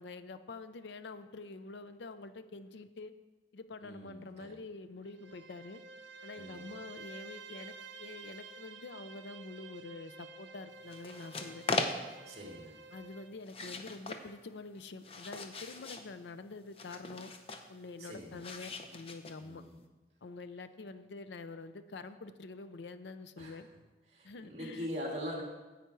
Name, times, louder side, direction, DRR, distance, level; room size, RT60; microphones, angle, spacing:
voice 1, 0.0-3.1 3.5-5.8 6.2-11.6 12.9-17.3 17.7-19.6 20.2-23.7 24.2-24.9, left 3 dB, 80° left, 11 dB, 0.5 m, -46 dB
voice 2, 3.8-4.6 6.4-6.8 12.3-12.8 18.0-18.4 19.4-19.8 23.4-23.6 24.1-25.4, equal, 35° right, -1 dB, 2.1 m, -42 dB
Bowed string instrument, 5.0-13.3, right 4 dB, 90° right, 0.6 m, -51 dB
sound 1, 10.9-12.3 13.4-14.2 14.8-16.1 16.7-17.7 18.4-19.6, left 3 dB, 30° left, 0.6 m, -39 dB
10.0 x 8.1 x 4.6 m, 1.2 s
head